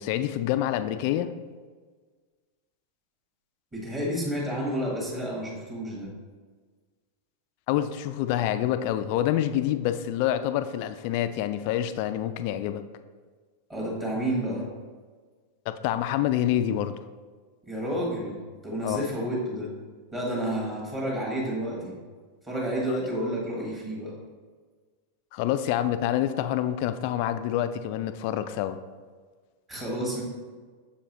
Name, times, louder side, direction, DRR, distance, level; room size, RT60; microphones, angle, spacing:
voice 1, 0.0-1.3 7.7-12.8 15.7-17.0 18.8-19.1 22.9-23.0 25.3-28.8, left 12 dB, 45° left, 11 dB, 0.3 m, -27 dB
voice 2, 3.7-6.1 13.7-14.7 17.6-19.7 20.1-22.0 22.4-24.1 29.7-30.2, equal, 15° right, -4 dB, 1.7 m, -30 dB
7.0 x 4.6 x 3.0 m, 1.5 s
figure-of-eight pair, 90°, 0 cm